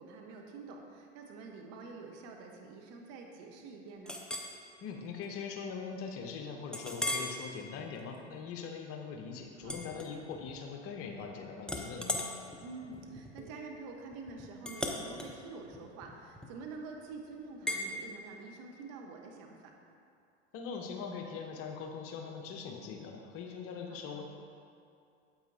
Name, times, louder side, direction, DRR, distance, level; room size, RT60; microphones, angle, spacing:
voice 1, 0.0-4.2 9.5-10.0 12.6-19.8 23.9-24.2, right 4 dB, 50° right, 1 dB, 1.2 m, -47 dB
Chink clink, 4.1-4.5 5.1-5.2 5.7-5.8 6.7-7.4 7.9-8.2 9.6-10.6 10.9-11.3 11.6-16.7 17.7-17.9, left 1 dB, ahead, 0.7 m, -38 dB
voice 2, 4.8-12.3 20.5-24.2, left 5 dB, 40° left, 3 dB, 1.0 m, -42 dB
8.9 x 8.1 x 2.8 m, 2.4 s
hypercardioid pair, 85°, 34 cm